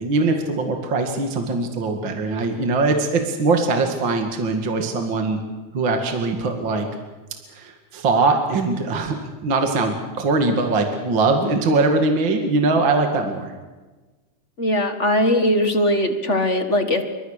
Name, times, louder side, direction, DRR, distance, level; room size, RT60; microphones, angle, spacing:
voice 1, 0.0-5.4 5.7-6.9 7.5-13.5, right 3 dB, 40° right, 4 dB, 2.6 m, -21 dB
voice 2, 14.6-17.0, left 1 dB, 30° left, 7 dB, 1.6 m, -20 dB
28.5 x 24.0 x 6.7 m, 1.3 s
omnidirectional pair, 3.4 m